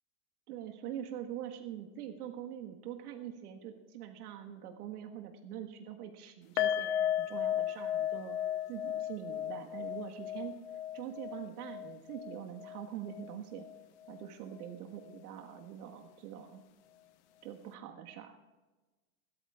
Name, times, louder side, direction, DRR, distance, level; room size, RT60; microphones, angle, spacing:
voice 1, 0.5-8.4 8.7-10.5 10.9-13.6 14.1-16.6 17.4-18.4, right 10 dB, 75° right, 3 dB, 1.6 m, -44 dB
sound 1, 6.6-13.8 14.0-14.2 14.6-14.7, left 11 dB, 50° left, 1.0 m, -35 dB
27.5 x 13.5 x 2.4 m, 1.2 s
supercardioid pair, 175°, 46 cm